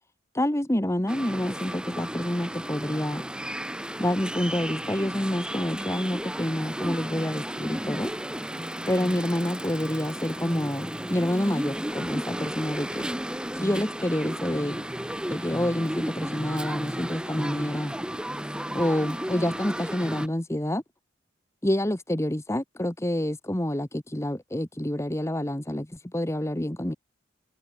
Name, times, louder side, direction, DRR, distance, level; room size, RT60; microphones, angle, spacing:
voice 1, 0.3-3.2 4.0-8.1 8.8-13.1 13.5-14.8 15.3-17.9 18.7-20.8 21.6-27.0, left 1 dB, 15° left, 1.3 m, -28 dB
sound 1, 1.1-20.3, equal, 5° right, 2.3 m, -34 dB
head